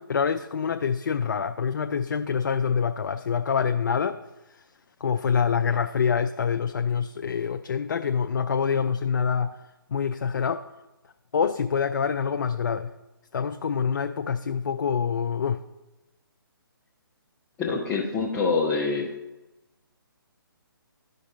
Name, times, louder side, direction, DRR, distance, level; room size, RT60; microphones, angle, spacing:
voice 1, 0.0-4.2 4.5-4.6 5.0-9.5 9.9-10.6 11.3-12.9 13.3-15.6, left 6 dB, 55° left, 7 dB, 0.4 m, -26 dB
voice 2, 17.6-19.1, left 4 dB, 15° left, -4 dB, 0.7 m, -25 dB
12.5 x 5.3 x 3.9 m, 1.0 s
figure-of-eight pair, 140°, 12 cm